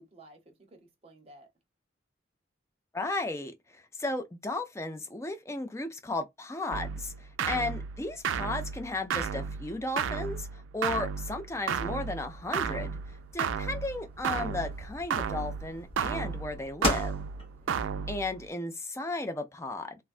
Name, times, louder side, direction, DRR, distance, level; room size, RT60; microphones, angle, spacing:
voice 1, 0.0-1.5 17.6-18.2, right 2 dB, 30° right, 0.9 m, -56 dB
voice 2, 2.9-17.1 18.1-20.0, left 2 dB, 15° left, 0.4 m, -35 dB
sound 1, 6.7-18.5, right 7 dB, 85° right, 0.3 m, -34 dB
sound 2, 12.3-17.9, left 1 dB, 30° left, 1.6 m, -38 dB
3.3 x 2.2 x 2.4 m
head